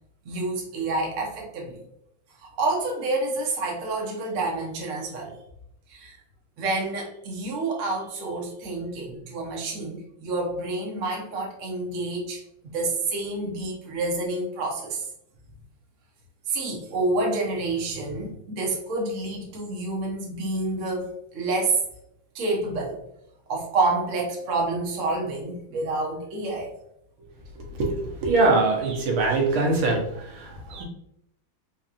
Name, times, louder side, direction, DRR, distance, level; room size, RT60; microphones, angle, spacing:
voice 1, 0.2-1.8 2.4-5.4 5.9-6.2 6.6-12.4 12.7-15.1 16.5-21.7 22.3-23.0 23.5-26.7 30.5-30.7, right 2 dB, 50° right, -1 dB, 0.9 m, -28 dB
voice 2, 27.8-30.8, right 3 dB, 80° right, 0 dB, 1.8 m, -23 dB
4.0 x 2.8 x 2.4 m, 0.76 s
omnidirectional pair, 2.3 m